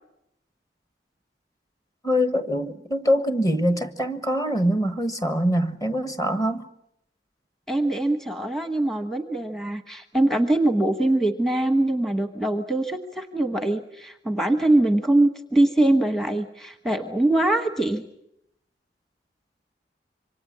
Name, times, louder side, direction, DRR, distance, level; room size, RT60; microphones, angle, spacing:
voice 1, 2.0-6.7, equal, 20° left, 1.4 m, -24 dB
voice 2, 7.7-18.0, right 1 dB, ahead, 1.1 m, -23 dB
26.5 x 25.0 x 7.5 m
head